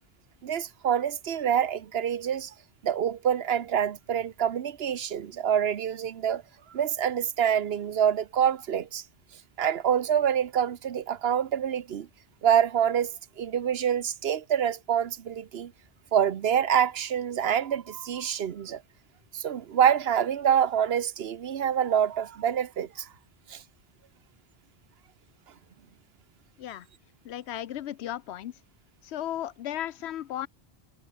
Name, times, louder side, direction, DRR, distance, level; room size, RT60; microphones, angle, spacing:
voice 1, 0.4-2.5 2.8-6.4 6.7-9.0 9.6-12.1 12.4-15.7 16.1-18.8 19.3-23.1 23.5-23.6, right 9 dB, 70° right, 1.0 m, -26 dB
voice 2, 27.2-28.6 29.0-30.5, left 12 dB, 85° left, 0.9 m, -35 dB
omnidirectional pair, 1.1 m